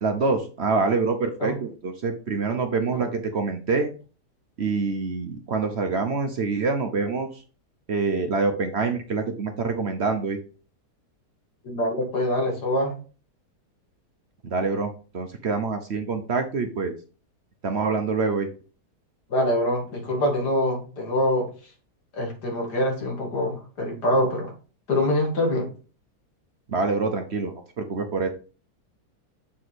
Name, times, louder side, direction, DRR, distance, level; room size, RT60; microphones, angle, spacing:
voice 1, 0.0-3.9 4.6-7.3 7.9-10.4 14.4-16.9 17.6-18.5 26.7-28.3, right 4 dB, 50° right, 6 dB, 1.0 m, -26 dB
voice 2, 11.6-12.9 19.3-21.5 22.1-24.5 24.9-25.7, left 1 dB, 90° left, 1 dB, 2.7 m, -24 dB
7.2 x 4.8 x 4.1 m, 0.37 s
omnidirectional pair, 1.7 m